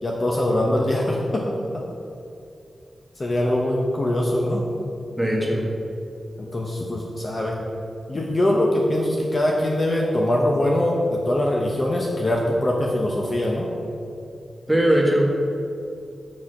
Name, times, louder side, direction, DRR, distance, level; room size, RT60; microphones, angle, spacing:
voice 1, 0.0-1.8 3.2-4.6 6.4-7.6 8.1-13.7, left 1 dB, 35° left, -1 dB, 0.9 m, -22 dB
voice 2, 5.2-5.6 14.7-15.3, right 1 dB, ahead, -3 dB, 1.7 m, -20 dB
6.5 x 6.0 x 6.6 m, 2.6 s
wide cardioid pair, 115°, 0 cm